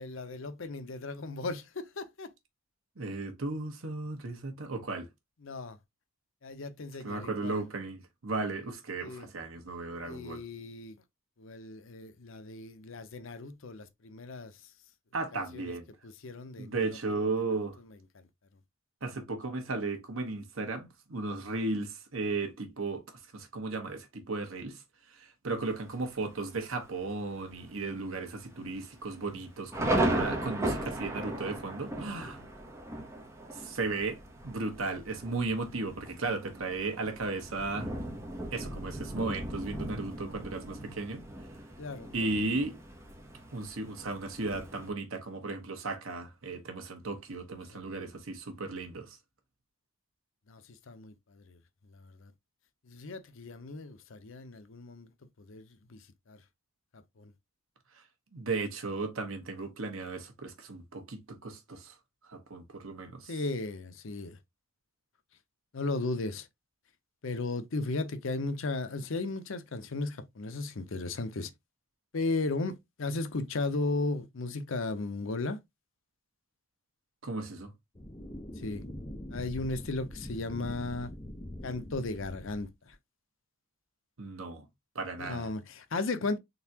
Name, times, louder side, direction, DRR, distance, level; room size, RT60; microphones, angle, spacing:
voice 1, 0.0-2.3 5.4-5.8 6.4-7.6 9.0-9.3 10.0-11.0 11.4-14.5 15.3-15.7 16.0-17.2 41.8-42.1 47.7-47.8 50.5-51.6 51.9-52.3 52.9-55.1 55.4-56.0 56.3-56.4 57.2-57.3 63.3-64.4 65.7-66.5 67.2-71.5 72.1-75.6 78.6-78.8 79.3-81.1 81.6-83.0 85.2-86.4, left 3 dB, 65° left, 0.6 m, -36 dB
voice 2, 3.0-5.1 7.0-10.4 15.1-15.9 16.6-17.8 19.0-23.0 23.3-24.8 25.1-32.4 33.5-37.9 38.5-41.2 42.1-42.7 43.5-49.2 58.3-61.9 62.2-63.3 77.2-77.7 84.2-84.7 84.9-85.5, right 3 dB, 70° right, 1.1 m, -35 dB
Thunder, 25.6-26.1 26.7-26.8 27.1-27.5 27.8-27.9 28.6-44.9, right 1 dB, 15° right, 0.8 m, -37 dB
sound 1, 78.0-82.9, left 1 dB, 25° left, 0.8 m, -43 dB
3.9 x 3.5 x 2.8 m
head